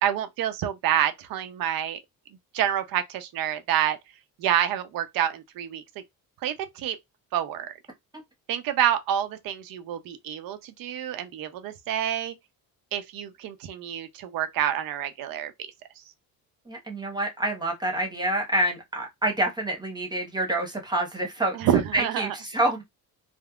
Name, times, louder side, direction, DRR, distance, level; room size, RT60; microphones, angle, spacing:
voice 1, 0.0-2.0 2.5-4.0 4.4-5.8 6.4-7.0 7.3-7.7 8.5-12.3 12.9-15.7 21.5-22.4, right 10 dB, 70° right, 0.7 m, -27 dB
voice 2, 16.7-21.6 21.9-22.8, right 1 dB, 10° right, 1.1 m, -27 dB
3.5 x 2.0 x 2.3 m
cardioid pair, 100°, 36 cm